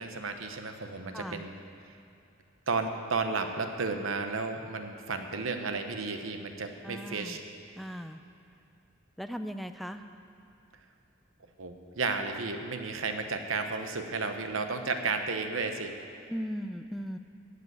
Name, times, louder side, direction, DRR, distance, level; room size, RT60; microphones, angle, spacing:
voice 1, 0.0-1.5 2.7-7.4 11.6-15.9, right 4 dB, 70° right, 6 dB, 0.9 m, -33 dB
voice 2, 1.1-1.4 6.8-7.4 7.7-8.2 9.2-10.0 16.3-17.2, equal, ahead, 8 dB, 0.4 m, -37 dB
14.5 x 5.1 x 9.3 m, 2.6 s
head